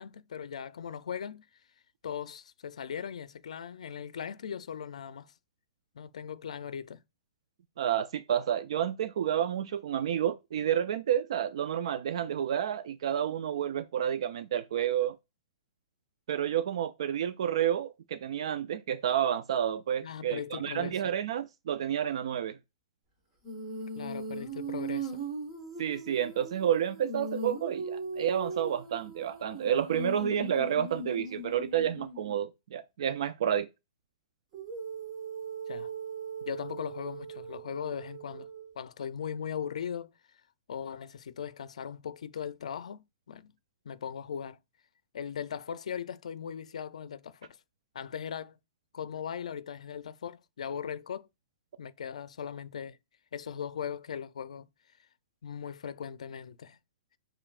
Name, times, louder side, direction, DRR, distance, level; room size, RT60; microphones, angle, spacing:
voice 1, 0.0-1.4 2.0-5.3 5.9-7.0 20.0-21.1 23.9-25.2 35.7-35.9 36.5-38.5 38.8-40.1 40.7-43.5 43.8-44.6 45.1-47.4 47.9-48.6 48.9-51.3 51.8-53.0 53.3-54.7 55.4-56.8, left 8 dB, 85° left, 0.5 m, -39 dB
voice 2, 7.8-15.1 16.3-22.6 25.8-33.7, right 9 dB, 55° right, 0.3 m, -30 dB
Female singing, 23.4-32.3 34.5-38.7, right 3 dB, 25° right, 1.3 m, -39 dB
6.7 x 3.0 x 2.4 m
hypercardioid pair, 170°, 3 cm